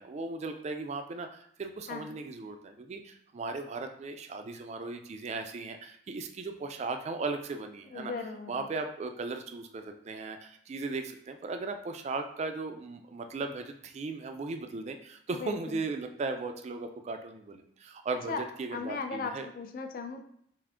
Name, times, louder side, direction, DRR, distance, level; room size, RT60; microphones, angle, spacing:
voice 1, 0.0-8.1 8.5-19.5, right 3 dB, 35° right, 6 dB, 0.3 m, -37 dB
voice 2, 7.9-8.7 15.3-15.8 18.3-18.4 18.7-20.2, left 4 dB, 45° left, 6 dB, 0.4 m, -37 dB
3.5 x 2.5 x 3.6 m, 0.68 s
head